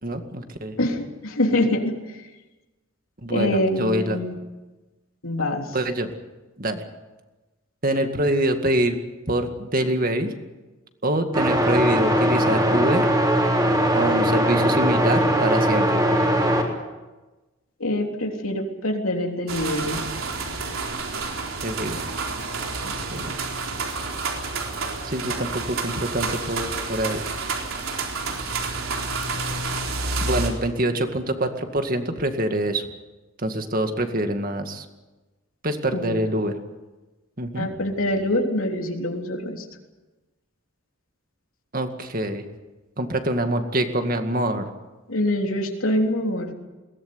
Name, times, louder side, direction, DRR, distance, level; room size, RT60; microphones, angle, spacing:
voice 1, 0.0-0.8 3.2-4.2 5.7-6.1 6.6-6.8 7.8-9.0 9.3-10.3 11.0-13.1 13.9-16.0 21.6-22.2 22.8-23.3 25.0-27.2 30.2-32.9 33.4-34.9 35.6-36.6 37.4-37.7 41.7-42.4 43.0-44.6, right 1 dB, 45° right, 6 dB, 2.1 m, -25 dB
voice 2, 0.8-2.0 3.3-4.3 5.2-5.6 17.8-20.0 35.9-36.2 37.6-39.6 45.1-46.5, left 1 dB, 90° left, 2 dB, 3.5 m, -25 dB
sound 1, 11.3-16.6, equal, 20° right, 3.6 m, -20 dB
sound 2, 19.5-30.5, right 3 dB, 85° right, 4.1 m, -29 dB
22.0 x 18.5 x 9.6 m, 1.2 s
head